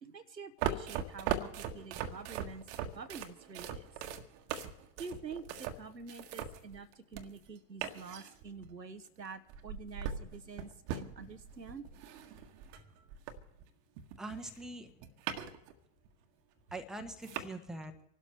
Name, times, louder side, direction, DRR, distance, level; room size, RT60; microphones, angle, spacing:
voice 1, 0.0-2.6 2.9-3.9 5.0-11.9, right 4 dB, 90° right, 11 dB, 0.9 m, -47 dB
sound 1, 0.6-7.5 7.8-8.7 9.5-13.7 14.0-15.7 16.0-16.1 16.8-16.9 17.2-17.5, right 8 dB, 45° right, 1.3 m, -40 dB
voice 2, 14.2-15.0 16.7-17.9, right 2 dB, ahead, 5 dB, 1.0 m, -43 dB
26.0 x 12.0 x 3.3 m, 0.78 s
figure-of-eight pair, 90°, 48 cm